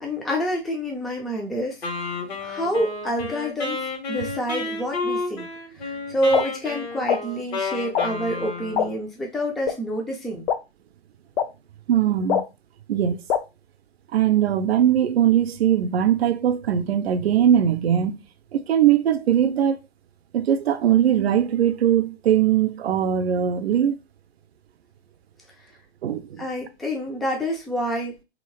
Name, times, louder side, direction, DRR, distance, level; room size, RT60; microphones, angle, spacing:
voice 1, 0.0-1.8 2.4-5.5 5.8-10.5 26.4-28.2, equal, ahead, 0.3 m, -27 dB
Wind instrument woodwind instrument, 1.8-9.0, left 3 dB, 75° left, 1.5 m, -31 dB
sound 1, 6.3-6.4 7.1-7.2 7.9-8.1 8.8-8.9 9.7-9.8 10.5-10.6 11.4-11.5 12.3-12.4 13.3-13.4, left 8 dB, 60° left, 0.6 m, -21 dB
voice 2, 11.9-12.4 12.9-13.2 14.1-18.2 18.5-19.8 20.3-24.0 26.0-26.4, right 10 dB, 70° right, 0.6 m, -20 dB
3.0 x 2.8 x 2.9 m
figure-of-eight pair, 115°, 32 cm